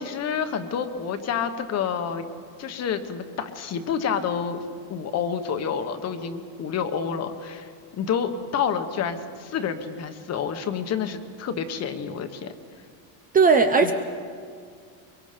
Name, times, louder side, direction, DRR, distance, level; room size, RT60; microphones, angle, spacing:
voice 1, 0.0-2.3 2.6-4.6 4.9-12.5 13.8-13.9, left 7 dB, 35° left, 8 dB, 1.2 m, -29 dB
voice 2, 13.3-13.9, right 4 dB, 20° right, 5 dB, 0.6 m, -17 dB
23.0 x 23.0 x 5.2 m, 2.1 s
cardioid pair, 155°, 46 cm